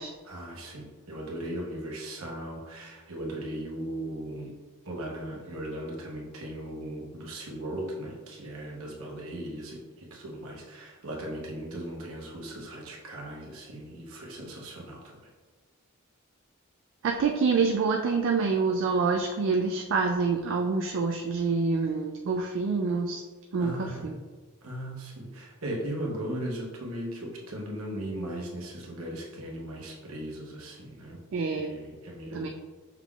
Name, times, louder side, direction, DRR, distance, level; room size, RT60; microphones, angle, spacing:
voice 1, 0.2-4.5 4.8-15.3 23.6-24.2 24.6-31.2 31.6-32.5, right 1 dB, 75° right, -1 dB, 1.0 m, -38 dB
voice 2, 17.0-23.2 23.5-24.2 31.3-31.8 32.3-32.5, right 4 dB, 60° right, 3 dB, 0.3 m, -27 dB
5.7 x 3.7 x 2.3 m, 1.4 s
head